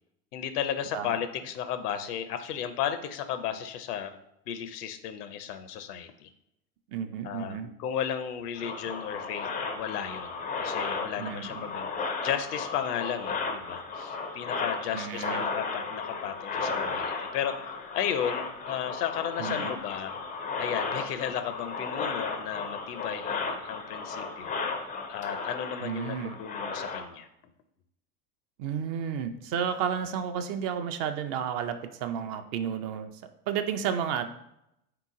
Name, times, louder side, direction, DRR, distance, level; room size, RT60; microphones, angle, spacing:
voice 1, 0.3-4.2 4.5-6.3 7.2-11.9 12.2-17.7 17.9-20.2 20.6-24.6 25.1-27.3, left 9 dB, 80° left, 9 dB, 0.6 m, -34 dB
voice 2, 6.9-7.7 11.2-11.7 14.9-15.4 19.4-19.7 25.8-26.4 28.6-33.1 33.5-34.2, right 8 dB, 45° right, 8 dB, 0.5 m, -32 dB
sound 1, 8.6-27.0, left 4 dB, 20° left, 0.3 m, -34 dB
3.7 x 2.9 x 3.6 m, 0.81 s
hypercardioid pair, 95°, 47 cm